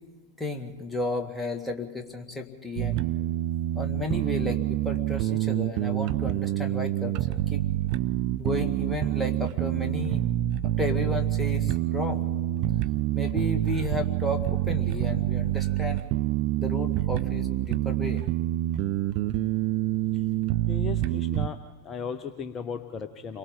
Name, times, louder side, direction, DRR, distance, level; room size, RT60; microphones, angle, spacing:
voice 1, 0.4-3.0 3.7-7.8 8.4-10.2 10.8-12.3 13.1-16.0 16.6-18.2, left 2 dB, 5° left, 3 dB, 2.0 m, -33 dB
sound 1, 2.8-21.5, right 14 dB, 40° right, 0.5 m, -27 dB
voice 2, 20.7-21.6 21.8-23.4, left 6 dB, 25° left, 8 dB, 0.9 m, -36 dB
29.5 x 22.5 x 3.9 m, 1.4 s
figure-of-eight pair, 90°, 0 cm